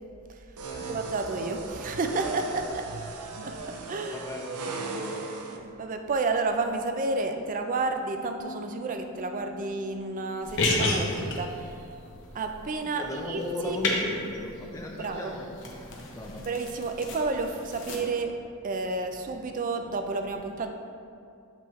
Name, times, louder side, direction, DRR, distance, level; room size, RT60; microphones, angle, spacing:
sound 1, 0.6-5.6, right 3 dB, 85° right, 0.6 m, -37 dB
voice 1, 0.9-2.8 3.4-4.3 5.5-11.8 12.3-13.8 15.0-15.4 16.5-20.7, right 3 dB, 35° right, 6 dB, 0.4 m, -31 dB
voice 2, 3.7-5.2 13.0-15.5 15.7-16.5, left 1 dB, 15° left, -1 dB, 0.5 m, -37 dB
sound 2, 8.4-13.5, left 5 dB, 90° left, 0.4 m, -48 dB
sound 3, 10.4-18.0, left 2 dB, 55° left, 0.8 m, -33 dB
7.6 x 4.3 x 3.1 m, 2.4 s
head